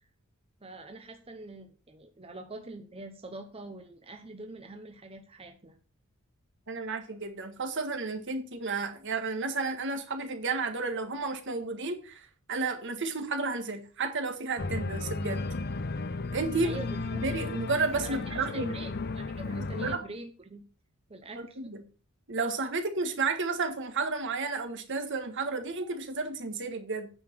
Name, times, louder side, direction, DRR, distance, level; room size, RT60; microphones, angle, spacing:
voice 1, 0.6-5.8 16.6-17.2 18.0-20.6 21.1-21.7, right 2 dB, 25° right, 5 dB, 0.9 m, -44 dB
voice 2, 6.7-15.4 16.3-16.8 17.2-18.7 19.6-20.0 21.4-21.8 22.3-27.1, right 3 dB, 60° right, 6 dB, 1.6 m, -32 dB
Organ, 14.6-20.0, left 3 dB, 50° left, 0.6 m, -34 dB
9.1 x 5.9 x 6.1 m, 0.38 s
head